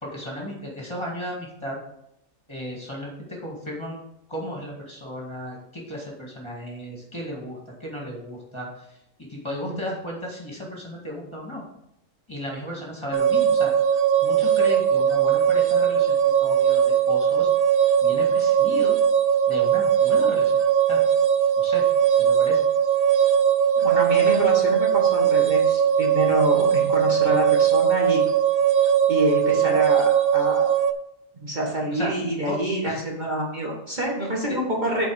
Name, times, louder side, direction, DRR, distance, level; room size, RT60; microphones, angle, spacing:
voice 1, 0.0-1.8 2.5-4.0 4.3-8.7 9.2-11.6 12.3-13.8 14.2-17.5 18.0-19.0 19.5-20.6 20.9-21.0 21.6-21.8 22.2-22.6 31.9-32.1 32.4-32.6 32.8-33.0 34.5-34.6, equal, 20° left, -2 dB, 2.1 m, -34 dB
sound 1, 13.1-30.9, right 8 dB, 55° right, 0.7 m, -20 dB
voice 2, 23.8-28.2 29.1-30.7 31.4-35.1, right 1 dB, 35° right, -3 dB, 1.9 m, -26 dB
8.2 x 4.5 x 6.4 m, 0.79 s
omnidirectional pair, 1.4 m